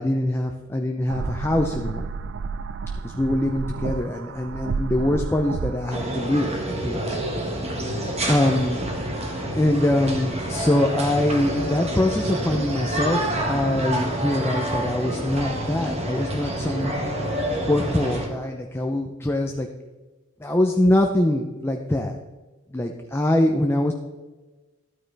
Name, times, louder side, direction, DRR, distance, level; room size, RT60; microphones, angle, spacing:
voice 1, 0.0-2.1 3.0-7.2 8.3-8.9 9.6-16.9 17.6-19.7 20.4-22.2 22.7-23.9, left 1 dB, 10° left, 3 dB, 0.6 m, -23 dB
sound 1, 1.1-6.1, right 5 dB, 55° right, 0.4 m, -31 dB
sound 2, 5.9-18.3, right 1 dB, 30° right, 1.5 m, -28 dB
12.0 x 9.2 x 3.4 m, 1.2 s
head